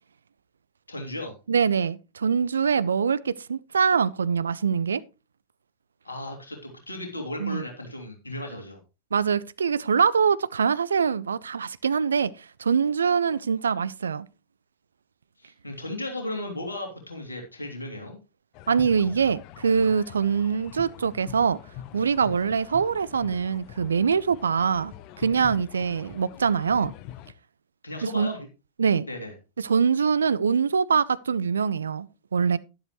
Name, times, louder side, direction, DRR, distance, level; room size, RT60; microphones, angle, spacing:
voice 1, 0.9-1.3 6.0-6.6 6.9-8.8 15.4-18.2 27.8-28.5 29.0-29.3, left 1 dB, 80° left, 3.0 m, -35 dB
voice 2, 1.5-5.0 7.4-7.6 9.1-14.3 18.7-21.6 21.9-26.9 28.1-28.3 28.8-29.1 29.6-32.6, right 6 dB, 70° right, 0.5 m, -24 dB
sound 1, 18.5-27.3, left 12 dB, 40° left, 0.8 m, -44 dB
12.0 x 11.0 x 3.1 m
figure-of-eight pair, 90°, 0 cm